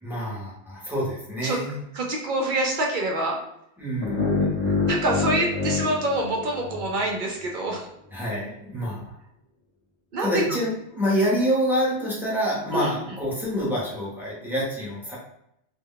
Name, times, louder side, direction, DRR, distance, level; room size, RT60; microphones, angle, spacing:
voice 1, 0.0-1.8 3.8-4.9 8.1-9.1 10.2-15.2, equal, ahead, -6 dB, 0.7 m, -27 dB
voice 2, 1.9-3.4 4.9-7.9 10.1-10.3 12.7-12.9, right 1 dB, 55° right, 0 dB, 0.6 m, -26 dB
sound 1, 4.0-7.1, left 4 dB, 25° left, 0.8 m, -26 dB
2.3 x 2.1 x 3.6 m, 0.79 s
omnidirectional pair, 1.1 m